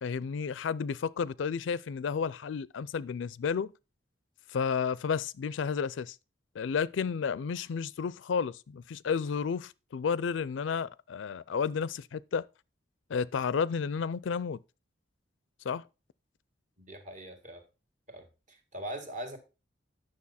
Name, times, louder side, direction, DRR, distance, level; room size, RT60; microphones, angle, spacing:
voice 1, 0.0-3.7 4.5-6.2 6.6-12.5 13.1-14.6 15.6-15.8, left 6 dB, 80° left, 0.4 m, -32 dB
voice 2, 16.8-17.6 18.1-19.4, right 1 dB, 40° right, 1.7 m, -41 dB
9.7 x 6.5 x 4.1 m
head